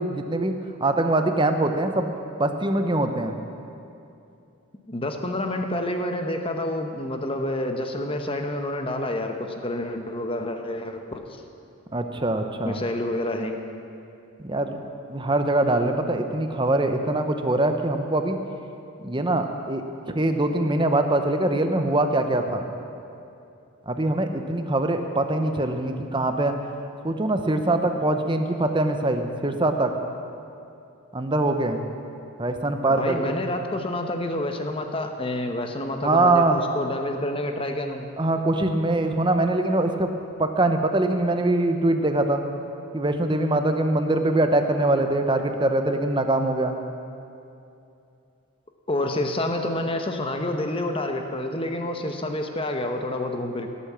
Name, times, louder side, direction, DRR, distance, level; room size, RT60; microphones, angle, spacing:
voice 1, 0.0-2.1 2.4-3.4 11.9-12.8 14.4-14.7 15.1-18.4 19.0-19.8 20.1-22.6 23.9-26.6 27.0-29.9 31.1-31.8 32.4-33.4 36.0-36.6 38.2-40.1 40.4-42.4 42.9-46.7, right 2 dB, 20° right, 6 dB, 0.8 m, -23 dB
voice 2, 4.9-11.2 12.6-13.6 32.9-38.1 48.9-53.7, left 1 dB, 25° left, 5 dB, 0.9 m, -28 dB
17.5 x 8.4 x 7.4 m, 2.7 s
head